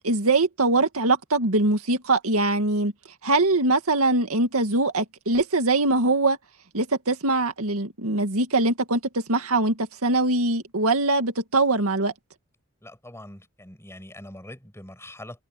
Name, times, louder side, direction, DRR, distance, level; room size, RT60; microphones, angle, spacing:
voice 1, 0.0-2.9 3.2-6.4 6.7-12.1, right 2 dB, 80° right, 2.1 m, -22 dB
voice 2, 12.8-15.5, left 1 dB, 10° left, 6.2 m, -43 dB
open air
head